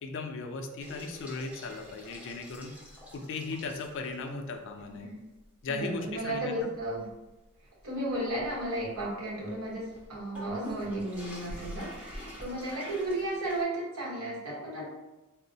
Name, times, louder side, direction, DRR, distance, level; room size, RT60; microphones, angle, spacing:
voice 1, 0.0-2.7 3.1-5.1 5.6-6.7 12.7-12.8, left 3 dB, 55° left, 4 dB, 0.4 m, -37 dB
sound 1, 0.8-4.4 4.8-4.9 5.4-5.5 6.0-13.6, equal, 5° right, 0.6 m, -46 dB
voice 2, 4.8-5.2 5.7-7.1 7.8-14.9, right 1 dB, 70° right, -5 dB, 1.1 m, -34 dB
3.7 x 2.0 x 2.7 m, 1.0 s
head